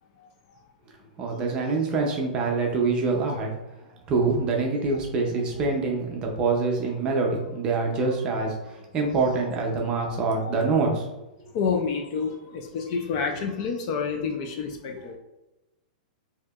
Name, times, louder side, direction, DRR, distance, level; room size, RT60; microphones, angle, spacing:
voice 1, 1.2-3.5 4.1-11.1, right 4 dB, 20° right, 0 dB, 0.5 m, -25 dB
voice 2, 10.0-10.5 11.5-15.2, left 5 dB, 30° left, 3 dB, 0.4 m, -29 dB
4.6 x 2.8 x 2.4 m, 1.0 s
hypercardioid pair, 170°, 5 cm